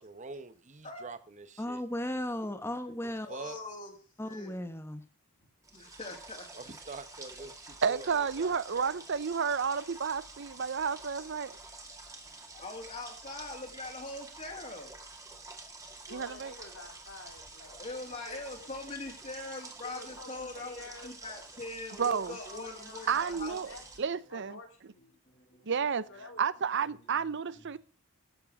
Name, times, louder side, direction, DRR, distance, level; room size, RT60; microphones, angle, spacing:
voice 1, 0.0-1.8 3.3-3.6 6.5-8.6, right 3 dB, 35° right, 1.1 m, -45 dB
voice 2, 1.6-3.3 4.2-5.0, left 1 dB, 10° left, 1.0 m, -35 dB
voice 3, 3.2-3.9 4.2-4.6 5.7-6.5 12.1-14.9 17.8-20.7 21.0-23.6 25.3-25.7, left 2 dB, 35° left, 2.5 m, -42 dB
sound 1, 5.6-24.0, right 3 dB, 15° right, 2.1 m, -49 dB
voice 4, 7.8-11.6 16.1-16.5 22.0-22.4 23.1-24.6 25.7-26.1 26.4-27.8, right 6 dB, 55° right, 0.6 m, -31 dB
voice 5, 16.1-18.0 18.3-18.7 19.8-21.1 22.4-25.1 26.1-26.4, left 2 dB, 65° left, 4.0 m, -50 dB
13.0 x 7.6 x 6.3 m
head